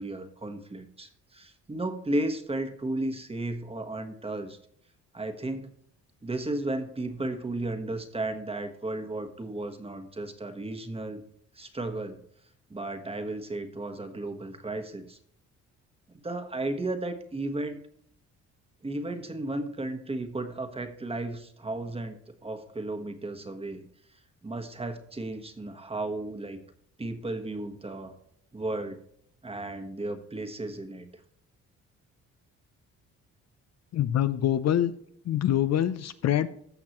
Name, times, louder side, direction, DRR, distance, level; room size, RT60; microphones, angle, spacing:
voice 1, 0.0-4.6 5.1-5.7 6.2-11.2 11.5-12.2 12.7-15.2 16.1-17.8 18.8-23.9 24.4-26.6 27.0-28.1 28.5-29.0 29.4-31.1, right 2 dB, 20° right, 7 dB, 1.3 m, -34 dB
voice 2, 33.9-34.9 35.3-36.5, left 11 dB, 60° left, 12 dB, 0.6 m, -25 dB
15.0 x 5.8 x 3.0 m, 0.67 s
cardioid pair, 90°, 30 cm